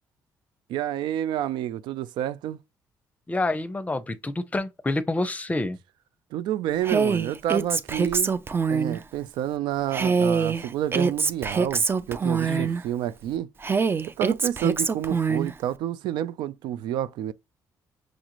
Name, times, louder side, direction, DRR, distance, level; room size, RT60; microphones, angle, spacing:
voice 1, 0.7-2.6 6.3-8.3 8.7-13.5 14.2-17.3, right 12 dB, 85° right, 0.4 m, -29 dB
voice 2, 3.3-5.8 12.5-12.7, left 2 dB, 20° left, 0.6 m, -28 dB
Female speech woman speaking, 6.8-9.0 9.9-12.8 13.6-15.5, right 5 dB, 30° right, 0.5 m, -24 dB
6.2 x 2.4 x 2.9 m
cardioid pair, 80°, 8 cm